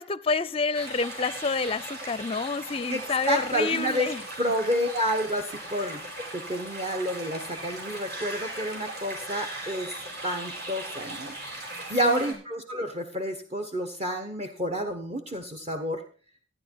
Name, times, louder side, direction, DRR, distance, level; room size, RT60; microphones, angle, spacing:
voice 1, 0.0-4.2 5.8-6.0 12.0-12.3, left 4 dB, 30° left, 0.5 m, -29 dB
sound 1, 0.7-12.3, right 2 dB, 50° right, 4.4 m, -38 dB
voice 2, 2.9-4.1 4.4-6.0 6.3-9.9 10.2-11.3 11.9-16.0, equal, 30° right, 1.1 m, -29 dB
14.0 x 9.9 x 4.6 m
head